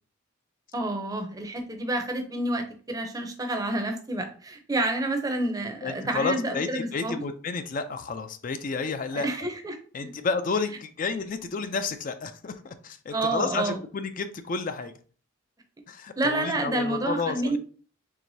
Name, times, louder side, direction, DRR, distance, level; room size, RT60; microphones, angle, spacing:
voice 1, 0.7-7.2 9.1-9.8 10.0-10.1 13.1-13.8 16.2-17.6, right 2 dB, 15° right, 0.6 m, -29 dB
voice 2, 5.8-9.5 9.9-14.9 15.9-17.6, left 4 dB, 40° left, 0.3 m, -31 dB
4.7 x 3.4 x 2.7 m
head